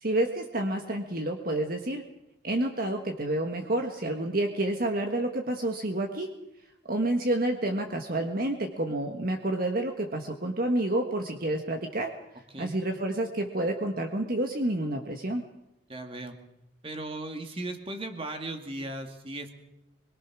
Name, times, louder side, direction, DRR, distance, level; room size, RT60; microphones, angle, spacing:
voice 1, 0.0-2.0 2.4-6.3 6.9-12.1 12.6-15.4, right 1 dB, 45° right, 3 dB, 1.7 m, -29 dB
voice 2, 15.9-16.3 16.8-19.5, right 2 dB, 25° right, 5 dB, 2.4 m, -37 dB
25.0 x 22.5 x 6.3 m, 0.87 s
head